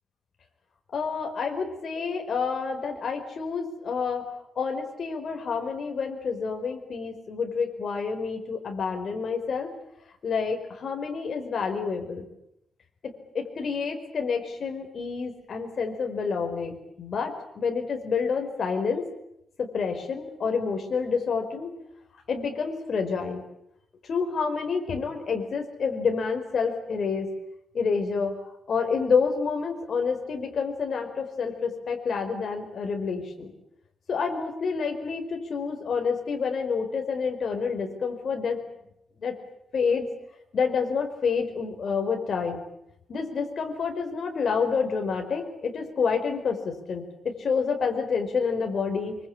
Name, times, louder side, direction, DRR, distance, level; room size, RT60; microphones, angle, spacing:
voice 1, 0.9-4.3 4.5-9.7 10.2-12.2 13.0-19.0 19.6-21.7 22.3-23.4 24.1-27.3 27.7-28.3 28.7-33.5 34.1-38.6 39.2-39.3 39.7-40.1 40.5-42.6 43.1-49.2, left 5 dB, 45° left, 3 dB, 5.1 m, -28 dB
25.5 x 24.5 x 8.8 m, 0.79 s
wide cardioid pair, 180°, 0 cm